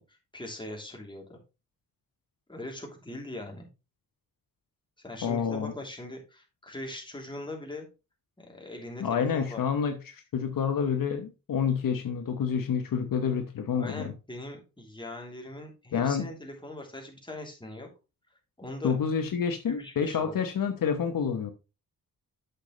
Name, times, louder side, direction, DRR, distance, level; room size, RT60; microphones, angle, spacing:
voice 1, 0.0-1.4 2.5-3.7 5.0-7.9 8.4-9.6 13.8-17.9 18.6-19.0 19.7-20.3, left 1 dB, 15° left, 3.1 m, -41 dB
voice 2, 5.2-5.7 9.0-14.1 15.9-16.3 18.8-21.5, left 7 dB, 70° left, 1.1 m, -28 dB
8.2 x 6.7 x 3.2 m
cardioid pair, 60°, 35 cm